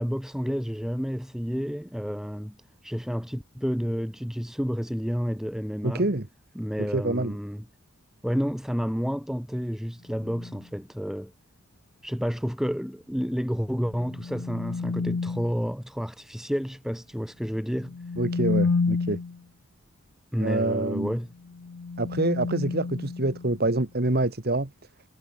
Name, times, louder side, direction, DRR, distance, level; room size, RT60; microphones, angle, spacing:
voice 1, 0.0-2.6 2.8-6.1 6.6-7.6 8.2-11.3 12.0-18.0 20.3-21.3, equal, ahead, 2.2 m, -30 dB
voice 2, 5.8-6.3 6.8-7.4 18.2-19.2 20.4-21.1 22.0-24.7, right 2 dB, 45° right, 1.5 m, -26 dB
sound 1, 10.2-10.6 13.7-15.6 17.7-19.4 21.4-23.7, left 4 dB, 80° left, 0.6 m, -30 dB
head